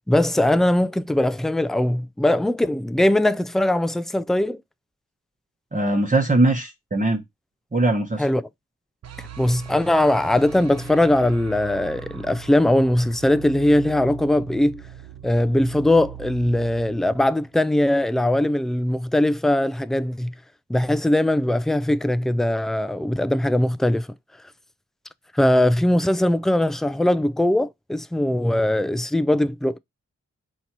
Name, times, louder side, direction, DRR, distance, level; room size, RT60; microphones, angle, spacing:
voice 1, 0.1-4.6 8.2-8.5 9.4-14.8 15.2-20.3 20.7-24.1 25.3-29.8, left 1 dB, ahead, 0.3 m, -20 dB
voice 2, 5.7-7.2 7.7-8.2, right 2 dB, 25° right, 1.0 m, -20 dB
sound 1, 9.0-18.1, right 10 dB, 60° right, 0.5 m, -40 dB
4.3 x 2.8 x 4.4 m
cardioid pair, 50°, 30 cm